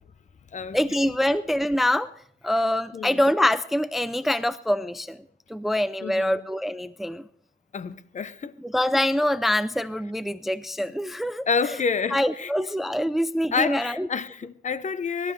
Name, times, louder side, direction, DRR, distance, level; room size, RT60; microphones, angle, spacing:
voice 1, 0.7-2.1 2.4-5.2 5.5-7.2 8.6-11.8 12.1-14.1, left 1 dB, ahead, 0.5 m, -25 dB
voice 2, 6.0-6.4 7.7-8.5 11.5-12.5 13.5-15.3, left 5 dB, 35° left, 0.9 m, -28 dB
24.0 x 12.5 x 3.3 m
cardioid pair, 90°, 20 cm